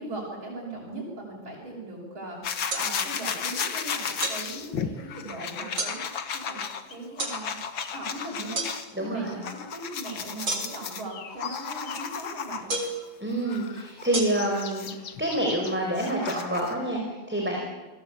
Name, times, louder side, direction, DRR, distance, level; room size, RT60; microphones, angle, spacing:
voice 1, 0.0-6.0 6.3-7.6 7.9-8.7 9.0-12.7, right 2 dB, 80° right, -4 dB, 7.0 m, -39 dB
sound 1, 2.4-8.9 9.3-12.9 13.5-16.8, left 7 dB, 70° left, 2.3 m, -34 dB
sound 2, 2.7-2.9 4.2-4.4 5.8-6.0 7.2-7.4 8.6-8.7 10.5-10.9 12.7-13.0 14.1-14.2, right 2 dB, 60° right, 4.7 m, -29 dB
voice 2, 8.9-9.4 13.2-17.6, right 1 dB, 5° right, 0 dB, 4.6 m, -28 dB
28.5 x 21.0 x 8.5 m, 1.2 s
omnidirectional pair, 2.2 m